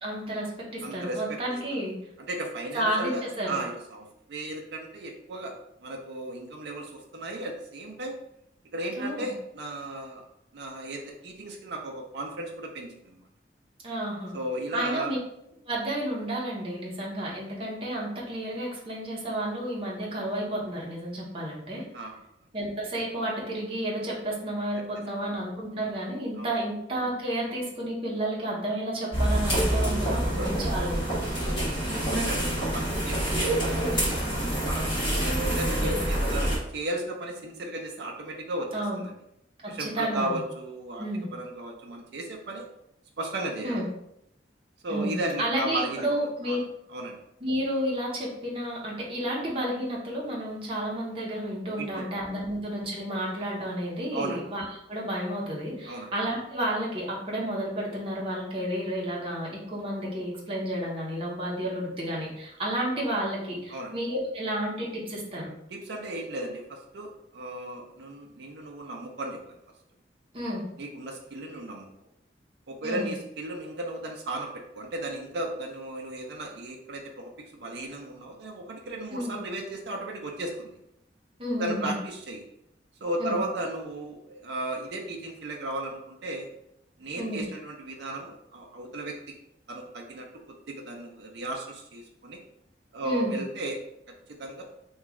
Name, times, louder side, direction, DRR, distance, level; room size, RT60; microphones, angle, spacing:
voice 1, 0.0-2.0 2.7-3.6 9.0-9.3 13.8-14.3 14.7-15.2 15.7-21.8 22.5-31.2 32.1-32.3 38.7-39.0 39.6-40.4 41.0-41.3 43.6-43.8 44.9-46.6 47.4-65.5 70.3-70.6 72.8-73.1 79.1-79.3 81.4-82.0 83.2-83.4 87.2-87.4 93.0-93.4, right 1 dB, 30° right, -4 dB, 0.8 m, -31 dB
voice 2, 0.8-1.6 2.3-5.5 5.8-8.2 8.7-10.2 10.5-13.3 14.3-15.1 21.9-22.1 25.2-25.3 26.4-26.6 30.1-31.0 31.4-34.0 34.3-39.2 39.7-41.1 41.3-42.7 43.2-43.9 44.8-46.1 46.5-46.6 46.9-47.2 51.8-52.2 54.1-54.4 55.8-56.1 63.7-63.9 65.7-69.6 70.8-71.9 72.7-80.8 81.6-82.4 83.0-86.5 87.0-89.3 89.7-92.4 92.9-93.8 94.4-94.6, right 1 dB, 70° right, 1 dB, 0.5 m, -35 dB
sound 1, 29.1-36.6, right 1 dB, 30° left, 1.4 m, -27 dB
3.0 x 2.3 x 3.6 m, 0.80 s
head